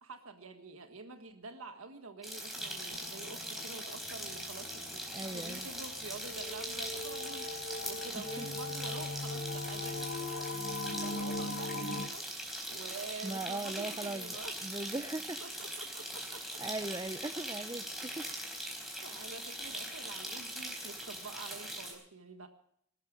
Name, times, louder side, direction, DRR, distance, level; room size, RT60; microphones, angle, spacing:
voice 1, 0.0-5.0 5.3-12.2 12.7-14.6 15.4-16.6 17.3-17.6 18.3-18.4 19.0-22.5, right 3 dB, 80° right, 6 dB, 1.7 m, -48 dB
sound 1, 2.2-21.9, equal, ahead, 4.1 m, -41 dB
sound 2, 2.6-12.1, left 2 dB, 45° left, 1.1 m, -41 dB
voice 2, 5.1-5.7 8.1-8.5 13.2-15.4 16.6-18.3, right 2 dB, 20° right, 10 dB, 0.5 m, -39 dB
20.5 x 12.5 x 5.2 m, 0.69 s
head